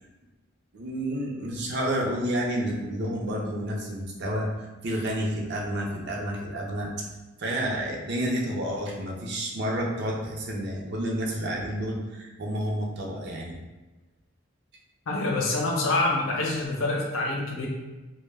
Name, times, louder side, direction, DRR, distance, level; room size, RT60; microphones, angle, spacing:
voice 1, 0.7-6.9 7.4-13.5, equal, 55° right, -1 dB, 0.5 m, -30 dB
voice 2, 15.1-17.7, left 2 dB, 80° left, -1 dB, 0.6 m, -26 dB
2.1 x 2.0 x 3.2 m, 1.1 s
head